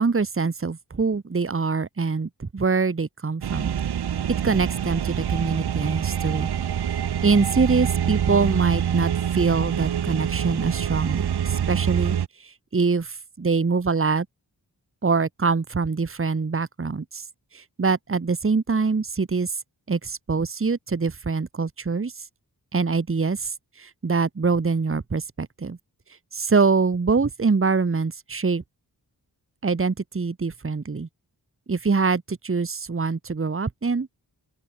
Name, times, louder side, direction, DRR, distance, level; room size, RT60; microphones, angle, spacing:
voice 1, 0.0-3.7 4.4-6.5 7.2-12.2 12.4-14.3 15.0-17.2 17.5-19.5 19.9-22.1 22.7-25.8 26.3-28.6 29.6-31.1 31.7-34.1, right 4 dB, 30° right, 1.2 m, -24 dB
sound 1, 3.4-12.3, right 9 dB, 65° right, 0.8 m, -25 dB
open air
cardioid pair, 45°, 42 cm